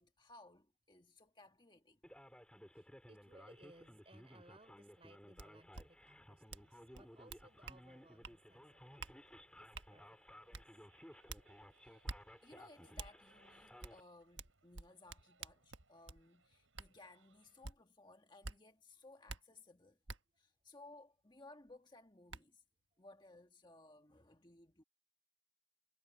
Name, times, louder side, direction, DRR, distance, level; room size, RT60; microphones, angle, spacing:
voice 1, 0.0-2.0 11.8-12.1 12.4-20.0 20.4-22.6 23.0-24.8, left 2 dB, 25° left, 1.5 m, -61 dB
Male speech man speaking, 2.0-14.0, equal, 5° left, 4.5 m, -58 dB
voice 2, 2.7-9.2 9.6-10.0 10.3-10.6, right 2 dB, 30° right, 4.1 m, -65 dB
sound 1, 5.4-5.5 5.7-5.8 6.5-6.7 6.9-7.8 8.2-8.4 9.0-9.1 9.7-9.9 10.5-10.6 11.3-11.4 12.0-12.2 13.0-13.1 13.8-13.9 14.4-16.2 16.8-16.9 17.6-17.8 18.4-18.6 19.3-19.4 20.1-20.2 21.7-21.8 22.3-22.4, right 3 dB, 70° right, 1.4 m, -47 dB
sound 2, 6.4-17.7, right 4 dB, 90° right, 7.3 m, -75 dB
head